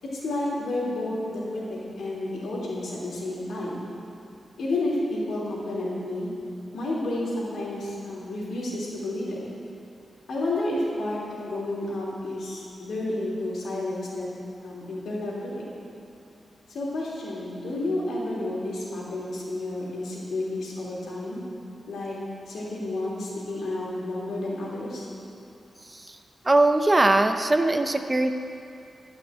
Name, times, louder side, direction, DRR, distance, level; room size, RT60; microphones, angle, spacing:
voice 1, 0.0-3.8 4.6-6.3 6.7-9.4 10.3-14.3 14.6-15.6 16.7-21.4 21.9-22.2 22.5-25.1, left 2 dB, 85° left, -5 dB, 3.3 m, -31 dB
voice 2, 26.4-28.3, right 2 dB, 20° right, 7 dB, 0.5 m, -20 dB
12.0 x 6.1 x 8.7 m, 2.7 s
wide cardioid pair, 140°, 0 cm